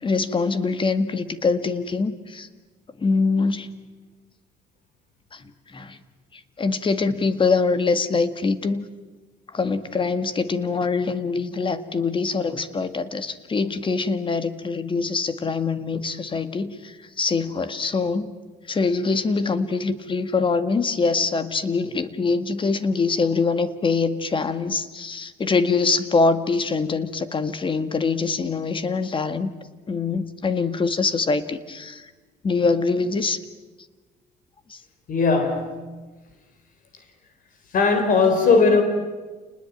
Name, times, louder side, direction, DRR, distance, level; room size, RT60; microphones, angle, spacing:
voice 1, 0.0-2.5 3.0-3.7 5.3-6.0 6.3-8.8 9.5-18.4 18.7-29.5 29.9-32.1 32.4-33.4 34.7-34.8, left 4 dB, 30° left, 12 dB, 1.9 m, -24 dB
voice 2, 35.1-35.8 37.7-38.8, left 4 dB, 55° left, 7 dB, 3.9 m, -18 dB
29.5 x 20.0 x 9.2 m, 1.3 s
cardioid pair, 110°, 17 cm